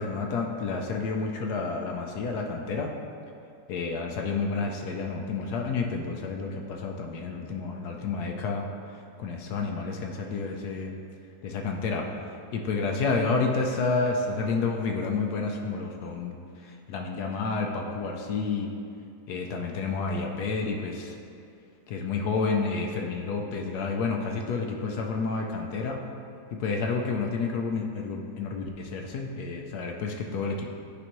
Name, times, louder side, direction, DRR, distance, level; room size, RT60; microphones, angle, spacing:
voice 1, 0.0-2.9 3.7-8.7 9.2-10.9 11.4-12.0 12.5-16.4 16.6-18.7 19.3-21.2 21.9-26.0 26.5-30.7, left 4 dB, 75° left, 2 dB, 1.2 m, -30 dB
10.0 x 5.1 x 3.0 m, 2.5 s
omnidirectional pair, 1.8 m